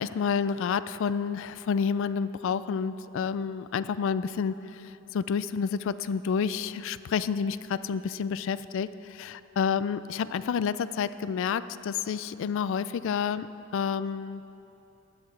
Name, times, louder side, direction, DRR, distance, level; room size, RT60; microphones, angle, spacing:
voice 1, 0.0-4.5 5.1-13.5 13.7-14.4, left 6 dB, 65° left, 14 dB, 0.3 m, -29 dB
16.5 x 10.5 x 3.3 m, 3.0 s
head